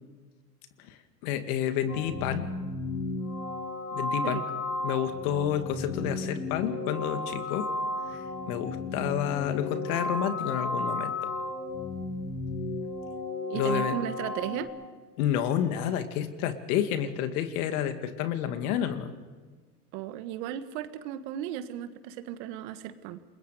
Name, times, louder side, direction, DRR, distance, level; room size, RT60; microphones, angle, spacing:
voice 1, 1.2-2.5 3.9-4.4 4.8-7.7 8.1-11.3 13.5-14.0 15.2-19.1, left 10 dB, 70° left, 9 dB, 2.2 m, -30 dB
sound 1, 1.9-14.7, left 2 dB, 85° left, 3.9 m, -34 dB
voice 2, 13.4-14.7 19.9-23.2, right 11 dB, 60° right, 11 dB, 1.7 m, -35 dB
28.5 x 21.5 x 5.0 m, 1.5 s
hypercardioid pair, 105°, 46 cm